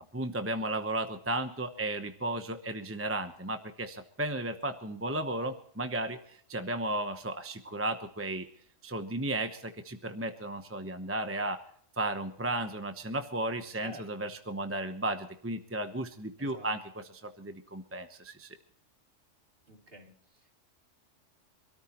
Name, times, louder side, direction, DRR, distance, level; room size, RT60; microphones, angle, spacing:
voice 1, 0.1-8.5 8.8-11.6 12.0-18.6, right 1 dB, 10° right, 7 dB, 0.9 m, -34 dB
voice 2, 13.8-14.3 16.4-16.7 19.7-20.5, right 1 dB, 50° right, 1 dB, 3.1 m, -49 dB
26.0 x 14.0 x 3.0 m, 0.62 s
omnidirectional pair, 1.3 m